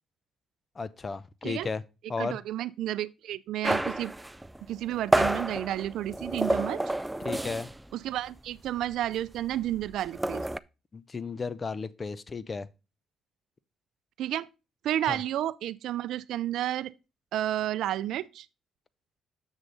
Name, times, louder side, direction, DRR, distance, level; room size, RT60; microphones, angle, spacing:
voice 1, 0.8-1.8 2.1-2.4 7.2-7.7 10.9-12.7 15.1-15.2, left 4 dB, 35° left, 0.6 m, -34 dB
voice 2, 2.2-4.1 4.7-6.8 7.9-10.5 14.2-14.5 14.8-16.9 17.3-18.5, right 12 dB, 80° right, 0.4 m, -31 dB
sound 1, 3.6-7.9 8.2-8.4 8.7-10.6, right 1 dB, 10° right, 0.3 m, -29 dB
7.3 x 6.4 x 3.9 m
cardioid pair, 90°, 0 cm